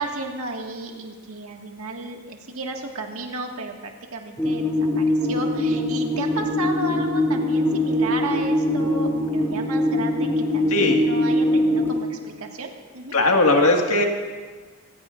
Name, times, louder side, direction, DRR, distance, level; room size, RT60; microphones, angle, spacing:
voice 1, 0.0-13.2, right 2 dB, 80° right, 1 dB, 1.9 m, -33 dB
sound 1, 4.4-11.9, left 1 dB, 10° left, 4.2 m, -22 dB
voice 2, 10.7-11.0 13.1-14.0, left 2 dB, 80° left, 1 dB, 1.9 m, -18 dB
26.0 x 15.5 x 2.6 m, 1.5 s
head